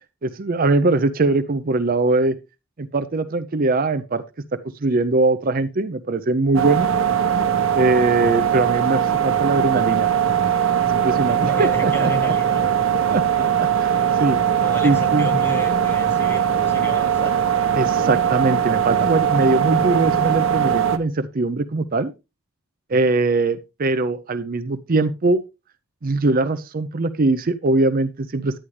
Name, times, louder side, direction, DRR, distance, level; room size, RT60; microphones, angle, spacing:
voice 1, 0.2-2.4 2.8-4.2 4.5-6.9 7.7-10.1 10.9-12.1 13.1-14.4 14.8-15.3 17.7-22.1 22.9-25.4 26.0-28.6, right 2 dB, 40° right, 0.5 m, -21 dB
sound 1, 6.5-21.0, right 9 dB, 60° right, 1.0 m, -20 dB
voice 2, 11.2-13.0 14.6-17.4 22.9-23.1, left 1 dB, 10° left, 1.3 m, -32 dB
10.0 x 9.7 x 3.2 m
head